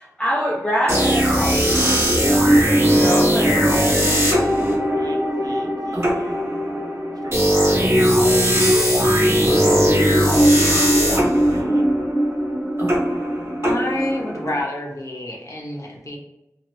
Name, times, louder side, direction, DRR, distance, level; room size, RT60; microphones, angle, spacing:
voice 1, 0.0-1.4 1.8-4.1, equal, 15° left, -7 dB, 0.7 m, -25 dB
sound 1, 0.9-14.6, equal, 40° right, 1.2 m, -18 dB
voice 2, 4.4-6.5 7.2-12.0, right 1 dB, 80° right, 0 dB, 0.6 m, -37 dB
voice 3, 13.6-16.2, left 1 dB, 55° left, -2 dB, 0.9 m, -28 dB
2.8 x 2.5 x 3.1 m, 0.89 s
wide cardioid pair, 50°, 6 cm